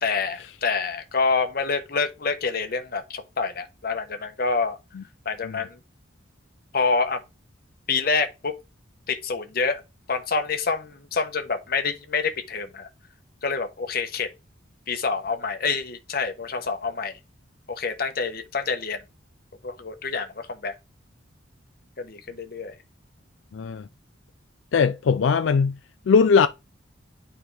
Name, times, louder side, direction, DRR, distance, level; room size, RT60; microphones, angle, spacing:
voice 1, 0.0-4.8 5.2-5.8 6.7-7.2 7.9-8.5 9.1-9.8 10.1-12.9 13.4-14.3 14.9-17.1 17.7-19.0 19.6-20.7 22.0-22.7, left 4 dB, 50° left, 1.0 m, -27 dB
voice 2, 23.5-23.8 24.7-25.7 26.1-26.5, left 5 dB, 80° left, 0.4 m, -19 dB
9.4 x 4.3 x 3.3 m
head